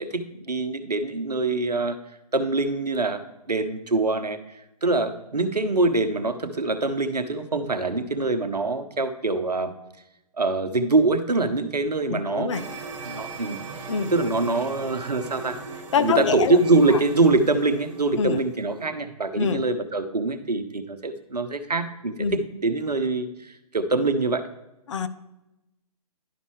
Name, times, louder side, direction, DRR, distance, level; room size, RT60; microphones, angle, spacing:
voice 1, 0.0-2.0 2.3-4.4 4.8-9.7 10.4-12.7 13.0-15.6 16.0-24.4, right 3 dB, 85° right, 10 dB, 0.9 m, -24 dB
voice 2, 12.1-12.6 13.9-14.1 15.9-16.6 16.9-17.0 18.2-18.4 19.3-19.6 22.2-22.4 24.9-25.1, left 6 dB, 50° left, 12 dB, 0.5 m, -25 dB
sound 1, 12.5-18.9, right 4 dB, 55° right, 1.5 m, -39 dB
11.0 x 5.4 x 3.1 m, 0.93 s
figure-of-eight pair, 135°, 20 cm